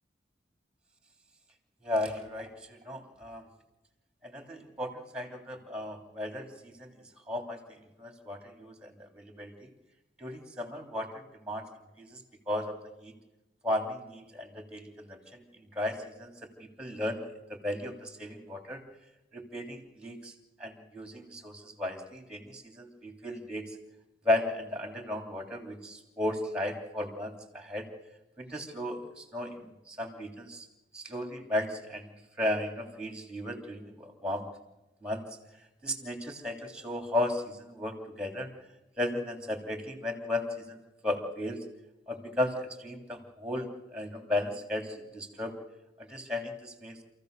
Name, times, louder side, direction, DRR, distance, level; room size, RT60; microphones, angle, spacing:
voice 1, 1.8-3.4 4.2-6.9 7.3-7.6 8.0-9.7 10.2-11.6 12.0-12.2 12.5-13.1 13.6-15.4 15.7-16.5 16.8-17.2 17.5-18.8 19.3-20.3 20.6-23.7 24.2-27.9 28.4-30.7 30.9-32.1 32.4-34.5 35.0-35.2 35.8-38.5 39.0-40.8 41.0-41.6 42.1-45.6 46.0-47.0, left 1 dB, 5° right, 4 dB, 3.2 m, -35 dB
28.0 x 15.0 x 6.7 m, 1.0 s
head